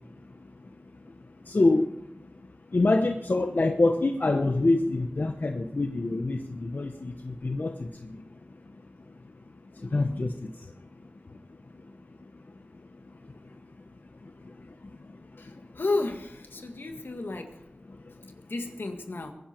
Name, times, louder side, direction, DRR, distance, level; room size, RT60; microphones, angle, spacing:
voice 1, 1.5-1.8 2.7-7.9 9.9-10.3, left 2 dB, 60° left, 5 dB, 1.0 m, -25 dB
voice 2, 15.8-17.5 18.5-19.3, left 2 dB, 80° left, 4 dB, 1.9 m, -32 dB
22.0 x 10.5 x 4.6 m, 0.86 s
wide cardioid pair, 55°, 4 cm